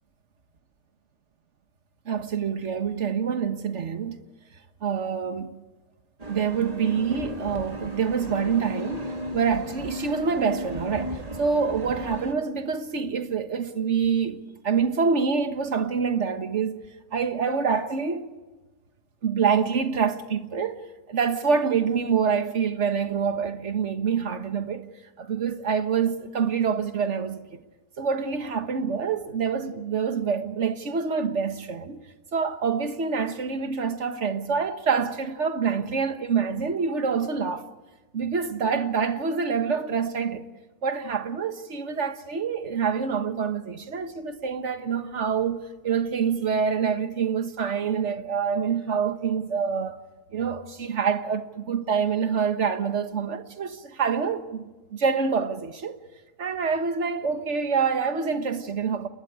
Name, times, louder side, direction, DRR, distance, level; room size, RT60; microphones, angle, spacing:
voice 1, 2.0-4.2 4.8-5.5 6.3-16.7 17.1-18.3 19.2-20.8 21.1-24.8 25.2-27.6 28.0-37.7 38.1-40.5 40.8-50.0 50.3-56.0 56.4-59.1, right 6 dB, 50° right, 1.7 m, -26 dB
sound 1, 6.2-12.3, equal, 25° right, 1.8 m, -35 dB
30.0 x 21.0 x 4.9 m
omnidirectional pair, 1.7 m